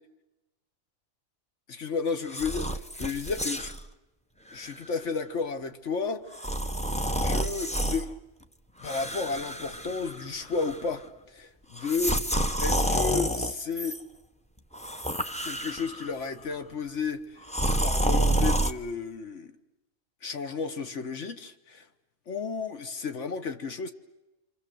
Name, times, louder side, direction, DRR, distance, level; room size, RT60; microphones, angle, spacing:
voice 1, 1.7-3.7 4.5-6.4 7.2-8.1 8.8-12.2 12.6-14.0 15.4-17.4 17.8-19.5 20.2-21.9 22.3-23.9, left 5 dB, 55° left, 1.8 m, -32 dB
sound 1, 2.3-3.8 4.5-4.7 6.3-8.0 8.8-10.3 10.5-11.0 11.8-14.0 14.7-16.1 17.5-18.7, right 1 dB, 5° left, 0.8 m, -29 dB
28.5 x 25.5 x 7.9 m
omnidirectional pair, 1.5 m